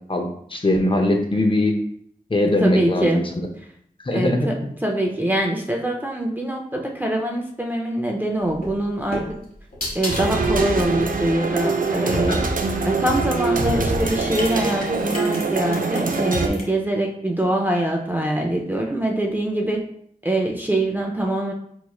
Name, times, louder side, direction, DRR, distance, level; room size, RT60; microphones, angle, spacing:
voice 1, 0.1-1.7 2.3-3.2 4.1-4.5, left 1 dB, 35° left, 4 dB, 0.6 m, -20 dB
voice 2, 2.6-3.2 4.1-4.5 4.8-9.2 9.9-12.5 12.8-19.8 20.2-21.5, right 1 dB, 10° right, -1 dB, 0.5 m, -23 dB
sound 1, 8.5-12.8 13.6-16.6, left 1 dB, 70° left, 1.3 m, -33 dB
sound 2, 10.1-16.5, right 3 dB, 65° right, 0.5 m, -23 dB
4.4 x 3.0 x 2.3 m, 0.67 s
wide cardioid pair, 70°, 15 cm